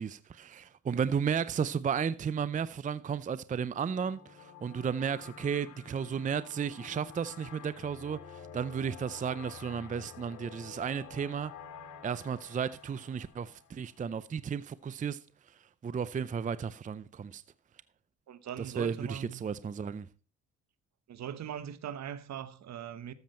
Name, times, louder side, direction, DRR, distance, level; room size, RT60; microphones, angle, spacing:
voice 1, 0.0-11.5 12.0-15.2 15.8-17.4 18.6-20.1, right 7 dB, 25° right, 0.5 m, -34 dB
sound 1, 3.8-14.1, left 6 dB, 90° left, 2.1 m, -50 dB
voice 2, 18.3-19.4 21.1-23.1, right 9 dB, 65° right, 1.1 m, -40 dB
13.5 x 7.3 x 4.3 m
cardioid pair, 90°, 30 cm